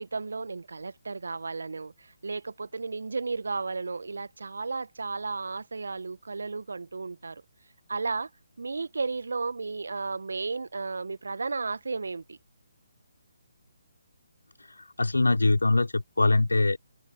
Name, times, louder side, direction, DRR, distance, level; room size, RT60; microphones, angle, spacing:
voice 1, 0.0-7.4 7.9-8.3 8.6-12.4, right 4 dB, 65° right, 1.6 m, -34 dB
voice 2, 15.0-16.8, left 2 dB, 80° left, 3.3 m, -22 dB
figure-of-eight pair, 145°, 0 cm